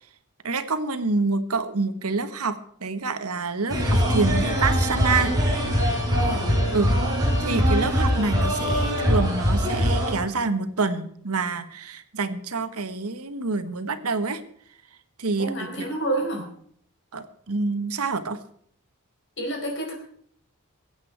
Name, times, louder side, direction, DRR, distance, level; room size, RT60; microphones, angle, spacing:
voice 1, 0.4-5.3 5.6-5.7 6.7-6.9 7.4-14.4 15.2-15.9 17.1-18.4, right 3 dB, 85° right, 10 dB, 1.3 m, -27 dB
sound 1, 3.7-10.1, equal, 15° right, 5.1 m, -22 dB
voice 2, 6.2-6.5 15.4-16.5 19.4-19.9, right 1 dB, 55° left, 1 dB, 5.1 m, -29 dB
22.5 x 8.5 x 4.6 m, 0.62 s
head